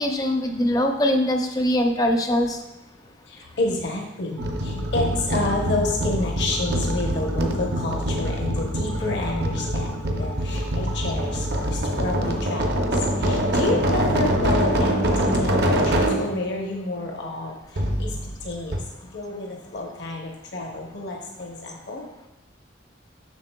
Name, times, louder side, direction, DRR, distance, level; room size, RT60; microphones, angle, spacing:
voice 1, 0.0-2.6, equal, 20° left, 4 dB, 0.4 m, -22 dB
voice 2, 3.3-18.8 19.1-22.1, left 2 dB, 70° left, 0 dB, 0.8 m, -30 dB
sound 1, 4.4-16.4 17.8-18.5 18.7-18.8, equal, 55° right, 0.6 m, -24 dB
7.4 x 6.1 x 2.2 m, 1.0 s
head